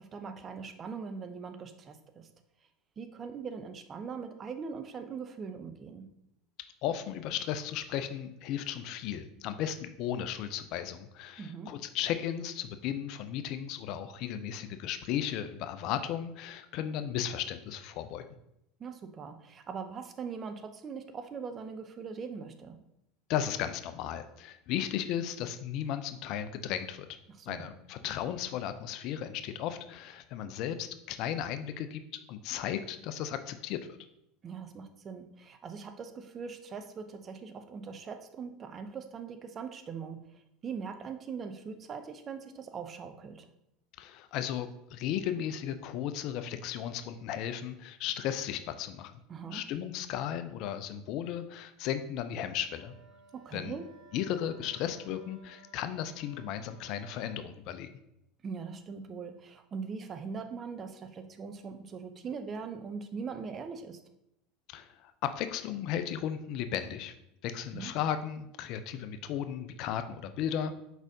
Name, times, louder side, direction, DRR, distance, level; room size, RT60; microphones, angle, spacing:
voice 1, 0.1-2.3 3.0-6.1 11.4-11.7 18.8-22.8 27.5-27.6 34.4-40.2 40.6-43.5 49.3-49.6 53.4-53.9 58.4-64.0 67.7-67.9, right 5 dB, 35° right, 8 dB, 0.5 m, -41 dB
voice 2, 6.8-18.3 23.3-27.1 27.5-33.8 44.0-49.1 49.5-52.9 53.5-53.8 54.1-57.9 64.7-67.1 67.4-70.7, left 10 dB, 55° left, 10 dB, 0.4 m, -35 dB
Wind instrument woodwind instrument, 52.6-57.5, right 3 dB, 65° right, 0.8 m, -58 dB
4.7 x 4.0 x 2.7 m, 0.81 s
hypercardioid pair, 80°, 0 cm